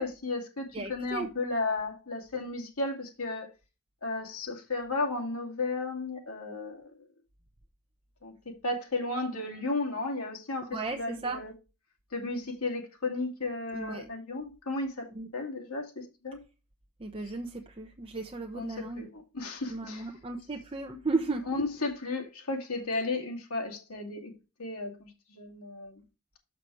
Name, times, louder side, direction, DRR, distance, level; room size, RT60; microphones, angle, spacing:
voice 1, 0.0-3.5 4.0-6.9 8.2-11.5 12.1-16.4 18.5-20.1 21.5-24.3 24.6-26.0, left 2 dB, 70° left, 2.3 m, -34 dB
voice 2, 0.7-1.3 10.7-11.4 13.7-14.1 15.1-15.3 17.0-19.1 19.7-21.5, right 3 dB, 25° right, 0.7 m, -35 dB
6.5 x 6.0 x 4.8 m
head